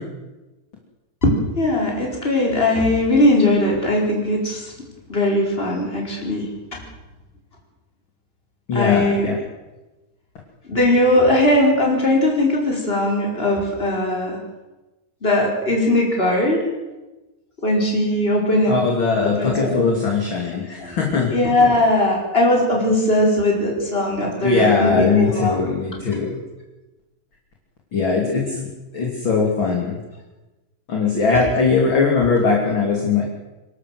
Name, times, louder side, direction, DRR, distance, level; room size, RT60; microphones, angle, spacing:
voice 1, 1.2-4.7 5.1-6.4 6.7-6.8 8.7-9.3 10.6-14.4 15.2-16.6 17.6-18.8 19.2-19.9 20.8-21.0 21.3-25.6 25.9-26.0 31.4-31.5, left 1 dB, 15° left, -1 dB, 5.0 m, -19 dB
voice 2, 8.7-9.3 18.7-21.3 24.4-26.4 27.9-28.7 28.9-30.0 30.9-33.2, left 4 dB, 30° left, -1 dB, 3.0 m, -20 dB
28.0 x 12.5 x 7.9 m, 1.1 s
omnidirectional pair, 5.1 m